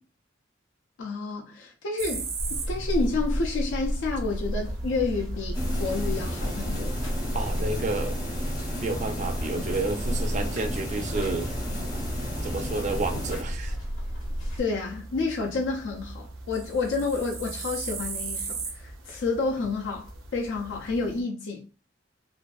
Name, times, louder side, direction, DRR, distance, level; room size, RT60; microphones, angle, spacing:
voice 1, 1.0-7.0 14.6-21.6, left 3 dB, 70° left, 0.4 m, -30 dB
sound 1, 2.0-21.2, right 3 dB, 90° right, 0.5 m, -40 dB
Buzz, 2.4-14.6, equal, 85° left, 0.8 m, -32 dB
sound 2, 5.5-13.4, equal, 20° left, 0.7 m, -34 dB
voice 2, 7.3-8.2 8.8-11.5 12.4-13.8, right 3 dB, 35° right, 0.3 m, -30 dB
2.5 x 2.2 x 2.3 m
head